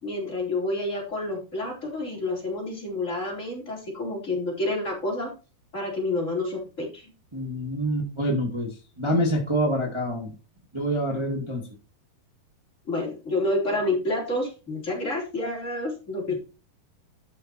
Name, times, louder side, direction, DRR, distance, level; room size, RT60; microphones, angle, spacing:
voice 1, 0.0-5.3 5.7-7.1 12.9-16.3, left 2 dB, 20° left, -1 dB, 3.8 m, -29 dB
voice 2, 7.3-8.7 9.0-10.3 10.7-11.6, equal, 15° right, -1 dB, 1.0 m, -26 dB
13.0 x 6.2 x 4.4 m, 0.33 s
omnidirectional pair, 4.7 m